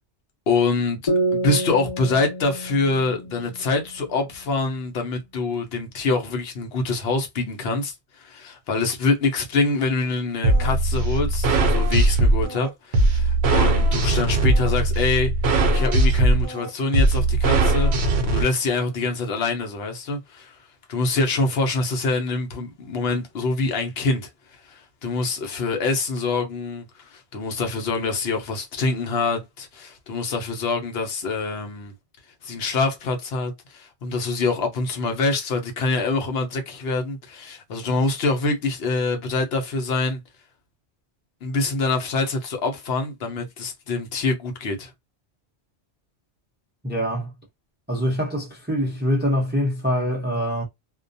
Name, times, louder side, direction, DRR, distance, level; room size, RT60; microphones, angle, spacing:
voice 1, 0.5-1.0 1.3-15.3 15.7-31.9 32.4-40.2 41.4-44.9, left 3 dB, 65° left, 0.9 m, -25 dB
sound 1, 1.1-4.5, right 1 dB, 35° left, 0.8 m, -28 dB
sound 2, 10.4-18.4, right 2 dB, 70° right, 0.8 m, -19 dB
voice 2, 46.8-47.3 47.9-50.6, equal, 15° right, 0.4 m, -24 dB
2.3 x 2.2 x 2.6 m
omnidirectional pair, 1.1 m